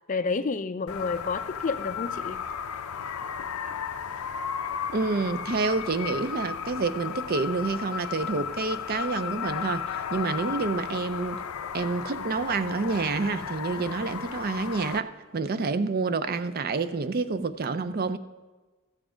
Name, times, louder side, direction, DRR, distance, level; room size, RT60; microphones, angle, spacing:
voice 1, 0.1-2.4, left 4 dB, 35° left, 12 dB, 0.4 m, -30 dB
sound 1, 0.9-15.0, left 7 dB, 90° left, 0.5 m, -34 dB
voice 2, 4.9-11.4 11.7-18.2, right 4 dB, 45° right, 12 dB, 0.5 m, -28 dB
14.0 x 7.3 x 5.0 m, 1.3 s
head